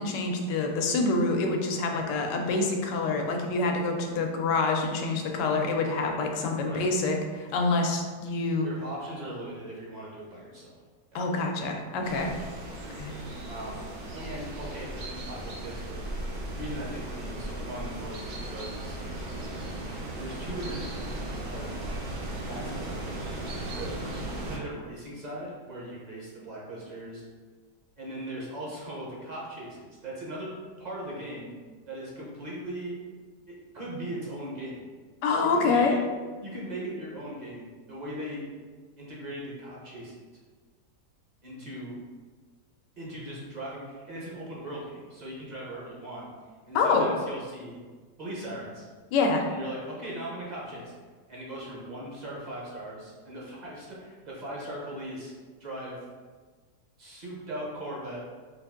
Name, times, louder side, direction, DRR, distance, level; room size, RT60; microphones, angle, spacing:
voice 1, 0.0-8.7 11.1-12.3 13.0-13.1 35.2-35.9 46.7-47.0 49.1-49.4, left 3 dB, 90° left, 2 dB, 1.2 m, -26 dB
voice 2, 8.6-10.7 11.1-11.2 13.5-13.8 14.1-16.0 16.5-19.0 20.2-20.8 21.1-21.7 22.5-23.2 23.5-24.0 24.4-27.2 28.0-30.5 30.8-31.5 31.9-32.9 33.5-34.8 35.4-36.0 36.4-38.5 39.0-40.2 41.4-42.0 43.0-46.3 46.7-47.8 48.2-48.9 49.4-50.9 51.3-55.3 55.6-56.0 57.0-58.2, right 1 dB, 35° right, -5 dB, 0.7 m, -39 dB
sound 1, 12.0-24.6, right 1 dB, 80° right, 0.4 m, -36 dB
4.0 x 2.6 x 3.6 m, 1.4 s
omnidirectional pair, 1.8 m